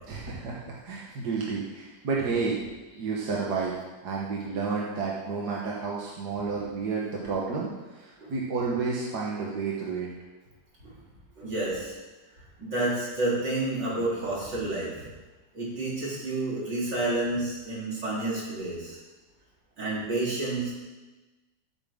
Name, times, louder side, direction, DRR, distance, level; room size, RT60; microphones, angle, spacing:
voice 1, 0.1-2.6 3.0-3.7 4.0-10.1, right 4 dB, 65° right, -4 dB, 1.9 m, -31 dB
voice 2, 11.4-11.9 12.6-14.9 15.5-19.0 19.8-20.7, right 2 dB, 85° right, -7 dB, 4.6 m, -30 dB
15.5 x 8.5 x 3.8 m, 1.2 s
omnidirectional pair, 1.9 m